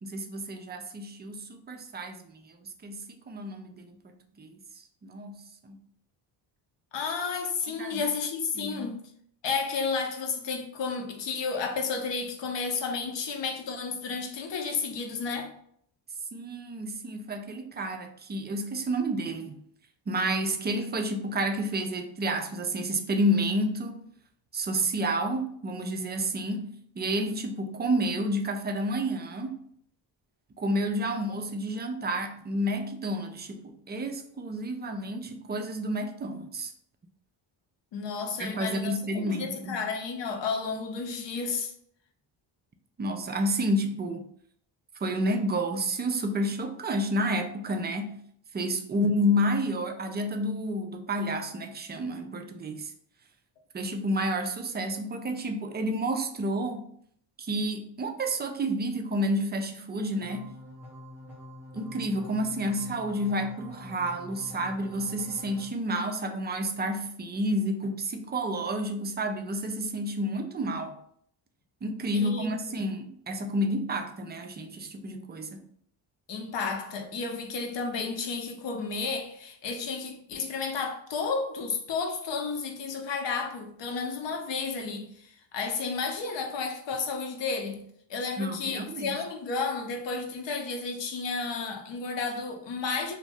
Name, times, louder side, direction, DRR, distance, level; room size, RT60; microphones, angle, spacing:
voice 1, 0.0-5.8 7.8-8.1 8.5-8.9 16.3-19.6 20.1-24.0 24.5-29.6 30.6-36.7 38.4-39.8 43.0-44.3 45.0-48.2 48.5-52.9 53.7-56.9 57.4-60.5 61.7-71.0 71.8-75.6 88.4-89.2, equal, 25° right, 0.3 m, -30 dB
voice 2, 6.9-9.0 9.4-15.5 37.9-39.0 39.2-41.7 72.1-72.8 76.3-87.8 88.1-93.1, left 4 dB, 60° left, 0.7 m, -32 dB
sound 1, 60.2-65.7, left 1 dB, 5° right, 0.8 m, -46 dB
2.6 x 2.1 x 3.3 m
supercardioid pair, 70°, 50 cm